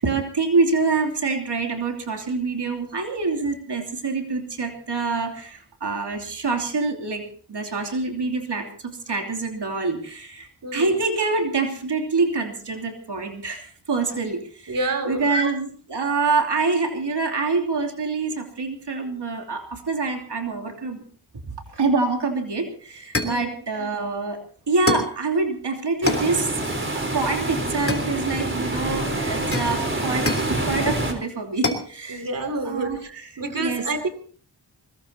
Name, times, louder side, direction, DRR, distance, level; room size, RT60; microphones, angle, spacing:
voice 1, 0.0-7.2 7.5-21.0 21.5-24.4 24.7-26.5 26.9-32.4 32.6-33.3 33.5-33.8, right 3 dB, 80° right, 3 dB, 3.0 m, -26 dB
voice 2, 10.6-10.9 14.7-15.3 23.2-23.5 32.1-33.1 33.4-34.1, right 2 dB, 50° right, 8 dB, 2.7 m, -28 dB
sound 1, 22.5-22.6 23.1-23.5 24.9-25.2 26.1-26.4 27.9-28.5 29.5-30.6 31.6-31.9, left 2 dB, 30° left, 3.2 m, -26 dB
sound 2, 26.0-31.1, right 1 dB, 30° right, 4.0 m, -26 dB
23.0 x 20.0 x 2.9 m, 0.44 s
wide cardioid pair, 75°, 41 cm